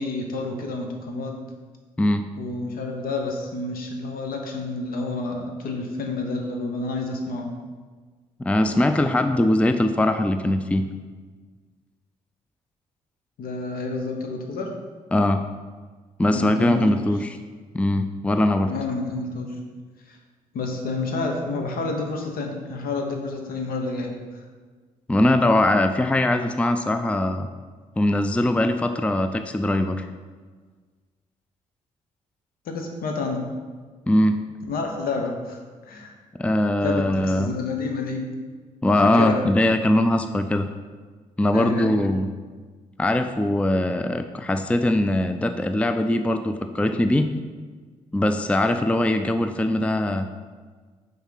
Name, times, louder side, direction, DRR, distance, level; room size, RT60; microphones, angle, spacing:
voice 1, 0.0-1.4 2.4-7.5 13.4-14.7 16.3-17.1 18.7-19.5 20.1-20.2 20.5-24.4 32.7-33.4 34.7-35.6 35.8-36.1 36.8-38.2 39.1-39.4 41.5-41.9, left 3 dB, 65° left, 3 dB, 1.0 m, -29 dB
voice 2, 2.0-2.3 8.4-10.8 15.1-15.4 16.2-17.4 17.7-18.7 25.1-27.5 28.0-30.1 34.1-34.4 36.3-37.5 38.8-40.7 41.4-42.3 43.0-47.3 48.1-50.3, left 1 dB, 10° left, 8 dB, 0.4 m, -21 dB
5.7 x 3.6 x 5.7 m, 1.5 s
hypercardioid pair, 50°, 16 cm